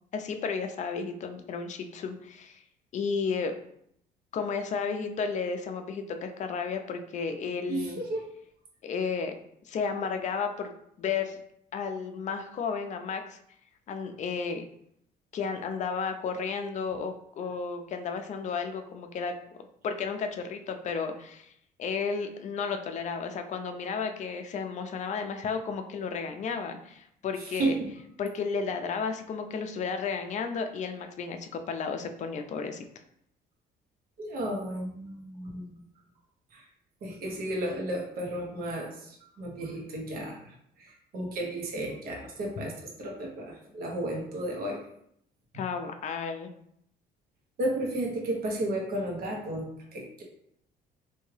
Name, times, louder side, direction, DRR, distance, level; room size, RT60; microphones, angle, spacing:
voice 1, 0.1-2.6 2.9-3.5 4.3-8.0 8.8-9.3 9.7-10.7 11.0-11.4 11.7-13.4 13.9-14.6 15.3-19.3 19.8-21.5 21.8-27.8 28.2-32.8 45.5-46.5, left 5 dB, 45° left, 6 dB, 0.5 m, -33 dB
voice 2, 7.7-8.2 27.6-27.9 34.2-35.8 36.5-36.6 37.0-40.4 40.8-42.7 43.0-44.8 45.5-45.6 47.6-49.7 49.9-50.2, right 1 dB, 65° right, -1 dB, 1.1 m, -33 dB
3.4 x 2.7 x 3.2 m, 0.71 s
cardioid pair, 110°, 17 cm